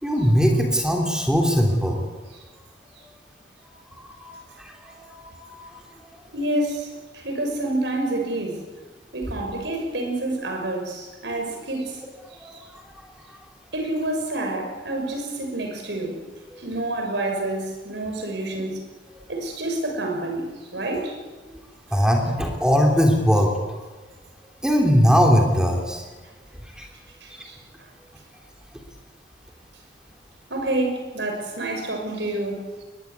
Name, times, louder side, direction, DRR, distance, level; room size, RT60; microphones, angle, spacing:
voice 1, 0.0-2.0 4.0-5.8 12.4-12.5 21.9-23.5 24.6-26.0 26.8-26.9, equal, 5° right, 1 dB, 3.3 m, -20 dB
voice 2, 6.3-8.6 9.1-12.0 12.4-12.6 13.7-16.2 16.6-18.8 19.3-21.2 27.2-27.6 30.5-32.8, right 1 dB, 70° right, 3 dB, 6.3 m, -28 dB
22.5 x 20.5 x 8.4 m, 1.3 s
head